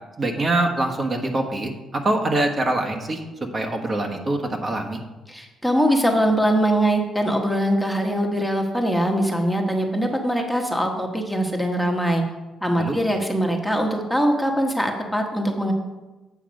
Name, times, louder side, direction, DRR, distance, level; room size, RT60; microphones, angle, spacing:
voice 1, 0.2-3.2 3.5-5.0 12.8-13.0, right 2 dB, 35° right, 3 dB, 1.3 m, -24 dB
voice 2, 5.3-12.2 12.6-15.7, equal, ahead, 2 dB, 1.1 m, -22 dB
8.3 x 5.8 x 5.2 m, 1.2 s
cardioid pair, 90°, 0 cm